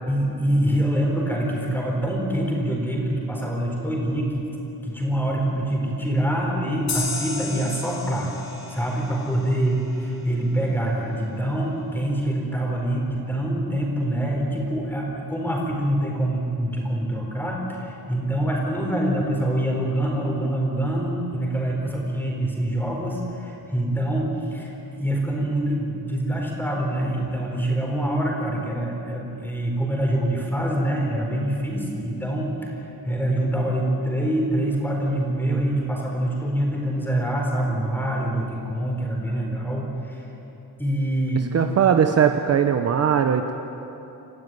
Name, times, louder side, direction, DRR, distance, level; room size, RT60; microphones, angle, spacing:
voice 1, 0.1-4.4 4.7-8.4 8.7-40.3 40.8-41.5, right 1 dB, 5° left, -1 dB, 4.4 m, -25 dB
sound 1, 6.9-10.2, left 4 dB, 45° left, 4.0 m, -33 dB
voice 2, 41.5-43.5, right 8 dB, 45° right, 6 dB, 0.9 m, -19 dB
28.5 x 15.0 x 9.4 m, 3.0 s
wide cardioid pair, 175°, 37 cm